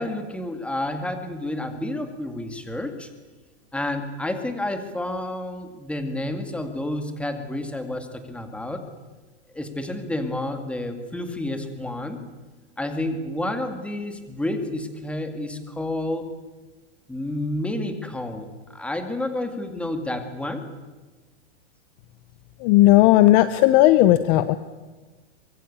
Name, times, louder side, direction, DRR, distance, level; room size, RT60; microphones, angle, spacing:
voice 1, 0.0-3.1 3.7-8.8 9.5-12.2 12.8-16.3 17.1-20.7, left 1 dB, 5° left, 7 dB, 2.1 m, -30 dB
voice 2, 22.6-24.6, left 15 dB, 35° left, 14 dB, 0.9 m, -15 dB
24.5 x 21.5 x 8.8 m, 1.3 s
hypercardioid pair, 150°, 36 cm